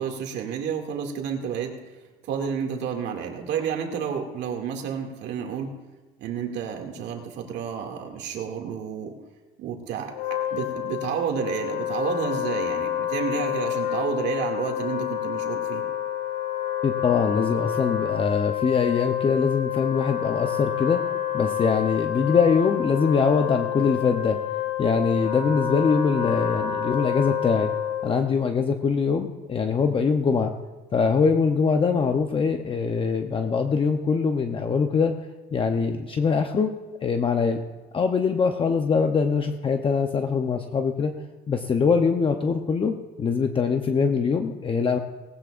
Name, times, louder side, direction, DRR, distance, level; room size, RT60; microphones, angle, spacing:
voice 1, 0.0-1.8 2.2-5.7 6.2-9.2 9.6-15.8, right 7 dB, 70° right, 2 dB, 2.3 m, -30 dB
Wind instrument woodwind instrument, 10.1-28.2, left 10 dB, 75° left, 2.2 m, -28 dB
voice 2, 16.8-21.0 21.3-24.4 24.8-27.7 28.0-30.5 30.9-35.1 35.5-36.7 37.0-37.6 37.9-41.1 41.5-45.0, left 5 dB, 30° left, 5 dB, 0.8 m, -23 dB
19.0 x 18.0 x 2.5 m, 1.3 s
cardioid pair, 130°, 19 cm